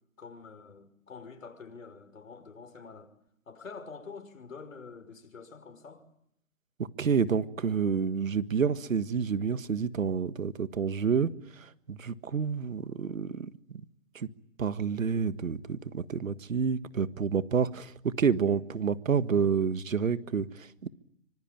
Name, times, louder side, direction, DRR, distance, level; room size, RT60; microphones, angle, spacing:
voice 1, 0.2-3.1 3.5-6.1, left 5 dB, 70° left, 6.0 m, -46 dB
voice 2, 7.0-11.3 11.6-13.8 14.1-14.3 14.6-20.9, right 6 dB, 75° right, 1.7 m, -29 dB
26.0 x 25.5 x 9.0 m
hypercardioid pair, 165°, 40 cm